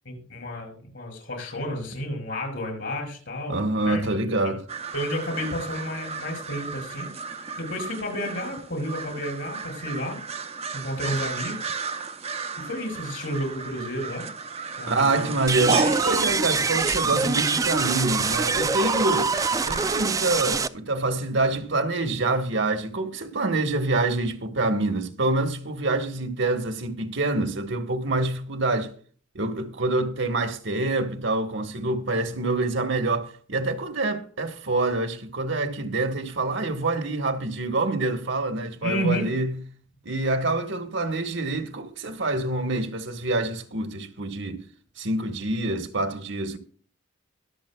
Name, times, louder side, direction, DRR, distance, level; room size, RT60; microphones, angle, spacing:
voice 1, 0.0-4.0 4.4-4.5 4.9-10.2 10.7-11.8 12.6-14.3 14.8-15.3 15.7-15.9 38.8-39.3, equal, 65° left, 5.7 m, -31 dB
voice 2, 3.5-4.6 14.9-19.3 19.6-28.9 29.3-39.6 40.0-44.6 45.0-46.6, right 2 dB, 65° right, 1.4 m, -26 dB
sound 1, 4.7-20.1, right 5 dB, 30° right, 0.7 m, -33 dB
sound 2, 15.5-20.7, right 4 dB, 15° right, 0.3 m, -25 dB
22.0 x 7.4 x 2.3 m
head